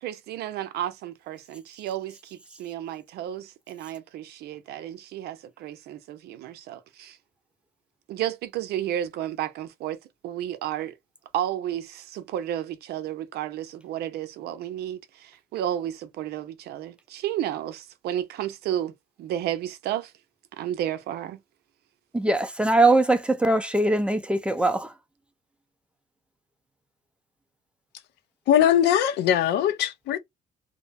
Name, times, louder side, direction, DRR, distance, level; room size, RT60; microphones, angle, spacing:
voice 1, 0.0-7.2 8.1-11.0 11.3-20.1 20.6-21.4, right 11 dB, 70° right, 0.6 m, -32 dB
voice 2, 22.1-24.9, right 2 dB, 5° right, 0.4 m, -21 dB
voice 3, 28.5-30.2, left 10 dB, 80° left, 0.6 m, -21 dB
2.6 x 2.0 x 2.5 m
cardioid pair, 110°, 17 cm